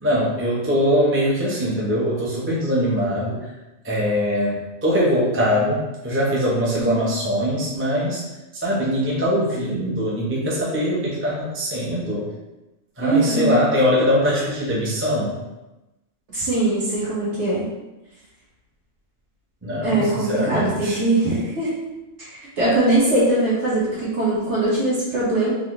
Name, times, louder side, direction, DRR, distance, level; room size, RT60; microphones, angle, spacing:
voice 1, 0.0-3.5 3.8-8.2 8.6-12.2 13.0-15.3 19.6-21.0, equal, 15° right, -6 dB, 0.5 m, -22 dB
voice 2, 13.0-13.6 16.3-17.6 19.8-21.7 22.2-25.5, right 2 dB, 55° right, -8 dB, 1.7 m, -21 dB
4.0 x 2.7 x 3.0 m, 1.0 s
omnidirectional pair, 1.5 m